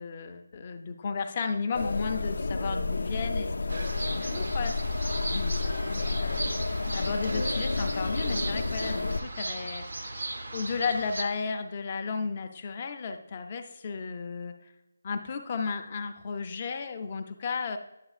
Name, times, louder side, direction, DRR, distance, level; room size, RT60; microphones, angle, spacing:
voice 1, 0.0-4.7 5.1-6.6 6.9-9.9 10.5-14.7 15.0-17.8, left 5 dB, 25° left, 6 dB, 0.4 m, -34 dB
sound 1, 1.7-9.2, left 3 dB, 85° left, 0.4 m, -30 dB
sound 2, 3.7-11.2, right 2 dB, 60° right, 0.6 m, -37 dB
8.8 x 6.9 x 2.4 m, 0.91 s
figure-of-eight pair, 175°, 0 cm